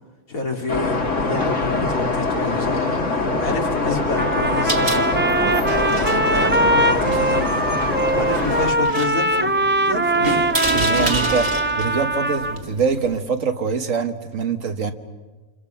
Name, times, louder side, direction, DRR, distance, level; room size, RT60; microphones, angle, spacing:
voice 1, 0.3-5.1 5.4-10.5, left 2 dB, 75° left, 1 dB, 3.3 m, -29 dB
sound 1, 0.7-8.7, left 3 dB, 60° left, 2.6 m, -23 dB
Trumpet, 4.2-12.6, right 1 dB, 15° right, 0.3 m, -21 dB
sound 2, 4.4-13.2, right 2 dB, 50° right, 2.1 m, -29 dB
voice 2, 10.7-14.9, right 5 dB, 65° right, 7 dB, 1.8 m, -24 dB
30.0 x 27.0 x 5.9 m, 1.2 s
omnidirectional pair, 1.5 m